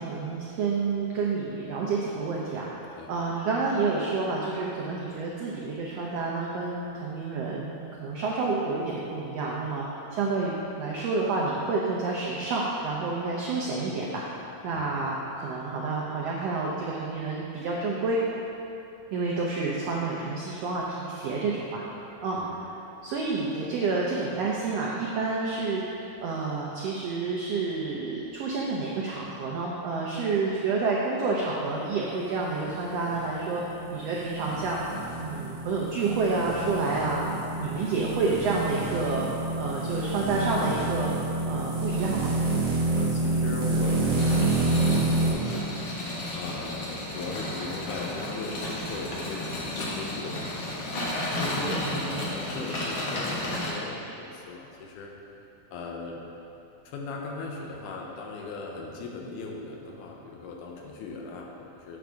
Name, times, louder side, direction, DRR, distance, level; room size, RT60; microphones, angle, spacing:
voice 1, 0.0-14.3 14.6-18.2 19.1-21.8 22.2-22.4 23.0-34.8 35.2-37.2 37.6-39.3 39.6-41.1 41.5-42.3 51.7-52.2, right 3 dB, 85° right, -4 dB, 1.4 m, -29 dB
sound 1, 32.4-45.3, right 2 dB, 60° right, 2.2 m, -28 dB
voice 2, 42.7-55.1 55.7-56.2 56.9-62.0, left 3 dB, 80° left, 0 dB, 2.2 m, -38 dB
sound 2, 44.2-53.7, left 1 dB, 60° left, 1.3 m, -33 dB
8.6 x 6.2 x 3.4 m, 2.8 s
omnidirectional pair, 3.7 m